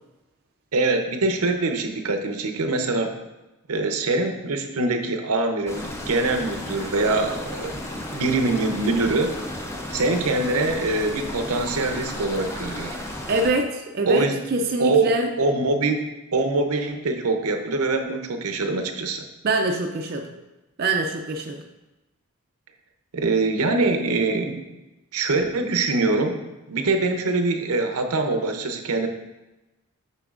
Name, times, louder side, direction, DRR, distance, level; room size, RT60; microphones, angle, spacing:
voice 1, 0.7-3.1 3.7-7.8 8.1-9.3 9.9-13.0 14.1-14.4 14.8-15.1 15.4-16.0 16.3-19.2 23.1-24.6 25.1-26.4 26.7-29.1, right 3 dB, 85° right, 5 dB, 0.7 m, -23 dB
sound 1, 5.7-13.5, left 1 dB, 10° left, 0.5 m, -34 dB
voice 2, 13.3-15.3 19.4-20.3 20.8-21.6, right 2 dB, 45° right, 3 dB, 0.4 m, -24 dB
7.0 x 5.7 x 2.4 m, 1.0 s
head